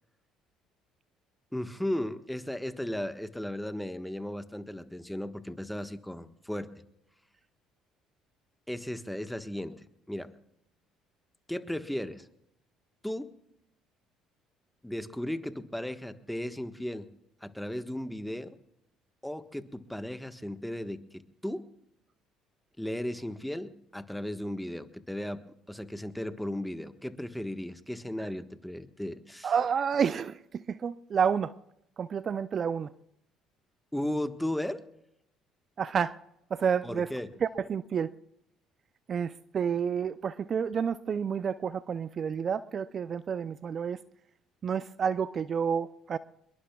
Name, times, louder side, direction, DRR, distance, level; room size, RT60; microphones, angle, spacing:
voice 1, 1.5-6.7 8.7-10.3 11.5-12.3 13.0-13.3 14.8-17.1 17.4-18.6 19.2-21.6 22.8-29.5 33.9-34.8 36.8-37.3, left 1 dB, 5° left, 1.4 m, -36 dB
voice 2, 29.4-31.5 32.0-32.9 35.8-36.2 36.5-37.1 37.4-38.1 39.1-44.0 44.6-46.2, right 7 dB, 45° right, 0.5 m, -29 dB
25.5 x 22.0 x 2.4 m
hypercardioid pair, 60°, 0 cm